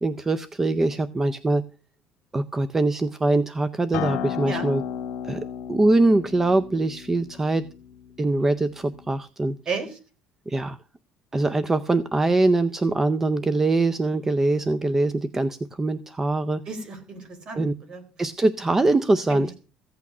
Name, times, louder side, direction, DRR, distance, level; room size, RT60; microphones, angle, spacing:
voice 1, 0.0-1.6 2.3-4.8 5.2-7.6 8.2-9.5 10.5-10.8 11.3-16.6 17.6-17.7 18.2-19.5, right 2 dB, 15° right, 15 dB, 0.6 m, -23 dB
Acoustic guitar, 3.9-9.1, left 8 dB, 65° left, 2.0 m, -34 dB
voice 2, 9.7-10.0 16.7-18.0 19.3-19.5, right 4 dB, 40° right, 9 dB, 3.8 m, -33 dB
15.0 x 8.4 x 6.0 m, 0.35 s
cardioid pair, 130°, 2 cm